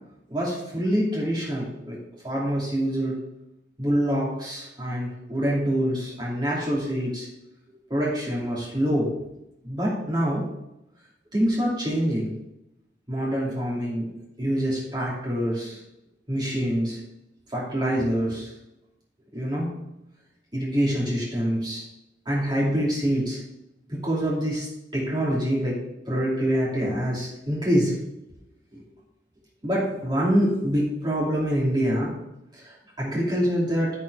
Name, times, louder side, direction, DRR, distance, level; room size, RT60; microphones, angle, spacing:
voice 1, 0.3-2.0 2.2-3.2 3.8-7.3 7.7-9.1 9.6-10.4 11.3-12.3 13.1-14.1 14.4-15.8 16.3-17.0 17.5-18.5 19.3-19.7 20.5-21.8 22.3-23.4 23.9-24.7 24.9-25.7 26.1-28.0 28.7-28.8 29.6-32.1 32.5-32.6 33.0-33.9, equal, 25° right, -5 dB, 2.7 m, -25 dB
12.5 x 4.5 x 4.8 m, 0.88 s
head